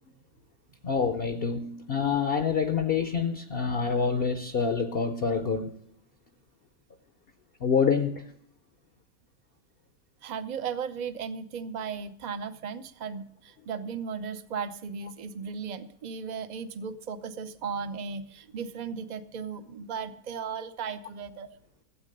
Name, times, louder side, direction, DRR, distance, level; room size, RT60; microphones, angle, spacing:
voice 1, 0.8-5.8 7.6-8.3, left 6 dB, 55° left, 0.7 m, -27 dB
voice 2, 10.2-21.5, right 6 dB, 55° right, 0.4 m, -36 dB
13.0 x 8.4 x 6.5 m
omnidirectional pair, 1.6 m